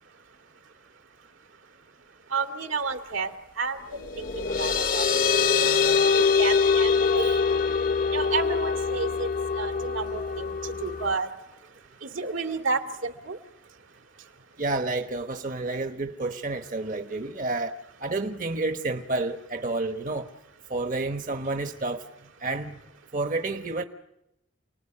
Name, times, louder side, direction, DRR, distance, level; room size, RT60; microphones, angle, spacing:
voice 1, 2.3-5.1 5.4-5.9 6.1-7.4 8.1-9.3 9.5-11.3 12.0-13.4, right 4 dB, 75° right, 2.3 m, -31 dB
sound 1, 4.0-11.1, left 5 dB, 45° left, 0.9 m, -24 dB
voice 2, 14.6-20.3 20.7-22.0 22.4-22.8 23.1-23.8, right 2 dB, 40° right, 1.1 m, -30 dB
29.0 x 20.0 x 10.0 m
head